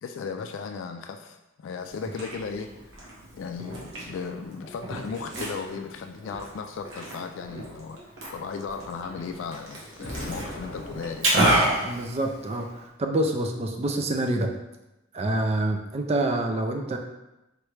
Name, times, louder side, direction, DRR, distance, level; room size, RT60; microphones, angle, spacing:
voice 1, 0.0-2.9 3.3-11.3, left 5 dB, 70° left, 5 dB, 0.3 m, -36 dB
Liquid, 1.9-12.9, right 1 dB, 70° right, 1.2 m, -30 dB
sound 1, 4.1-4.3 4.6-4.8 5.1-5.3 5.6-5.8 6.2-6.4 6.8-6.9 7.3-7.5 7.9-8.1 8.5-8.6 9.0-9.2, equal, 5° right, 0.8 m, -50 dB
Explosion, 10.0-12.1, left 1 dB, 55° left, 0.8 m, -39 dB
voice 2, 11.8-14.5 15.1-17.0, right 1 dB, 30° right, 4 dB, 0.4 m, -27 dB
4.5 x 3.0 x 3.2 m, 0.95 s
head